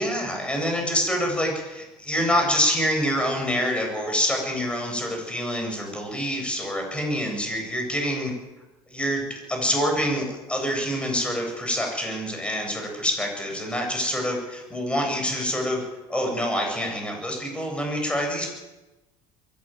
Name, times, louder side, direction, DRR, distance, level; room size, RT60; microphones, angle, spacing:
voice 1, 0.0-8.3 8.9-15.8 16.1-18.5, equal, 10° left, 2 dB, 7.5 m, -26 dB
23.0 x 16.5 x 9.2 m, 1.1 s
cardioid pair, 150°, 14 cm